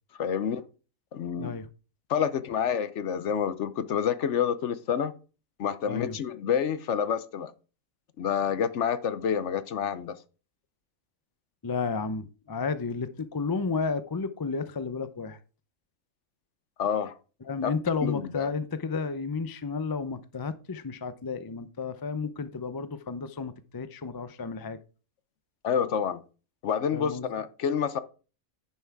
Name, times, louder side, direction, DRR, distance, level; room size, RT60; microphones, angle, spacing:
voice 1, 0.2-0.6 1.1-1.5 2.1-5.1 5.6-7.5 8.2-10.2 16.8-17.1 17.6-17.7 18.0-18.5 25.6-26.2 26.6-28.0, left 8 dB, 60° left, 1.0 m, -28 dB
voice 2, 11.6-15.4 17.5-24.8 26.9-27.3, left 4 dB, 40° left, 0.3 m, -32 dB
10.0 x 5.7 x 4.6 m
omnidirectional pair, 1.5 m